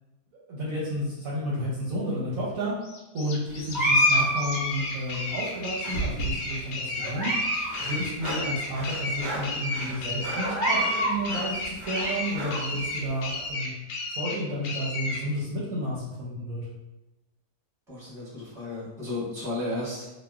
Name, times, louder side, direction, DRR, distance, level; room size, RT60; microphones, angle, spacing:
voice 1, 0.5-2.7 3.1-13.7 14.1-16.6, equal, 65° right, -6 dB, 0.9 m, -31 dB
sound 1, 2.8-15.2, left 3 dB, 75° left, 1.1 m, -33 dB
sound 2, 3.7-5.2 5.8-6.5 7.0-7.7 8.0-8.1 8.8-8.9 9.3-9.4 10.4-11.2 11.6-12.6, equal, 35° right, 0.8 m, -26 dB
sound 3, 7.7-12.7, right 1 dB, 85° right, 0.5 m, -38 dB
voice 2, 17.9-20.0, left 2 dB, ahead, -9 dB, 0.8 m, -33 dB
3.0 x 2.3 x 2.3 m, 1.0 s
omnidirectional pair, 1.8 m